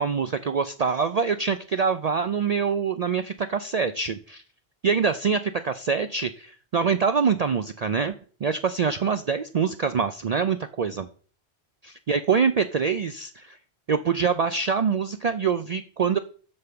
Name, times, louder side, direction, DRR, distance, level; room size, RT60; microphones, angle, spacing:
voice 1, 0.0-4.4 4.8-8.1 8.4-11.1 11.8-13.6 13.9-16.2, right 6 dB, 50° right, 10 dB, 0.5 m, -25 dB
7.9 x 5.5 x 6.9 m, 0.43 s
omnidirectional pair, 1.1 m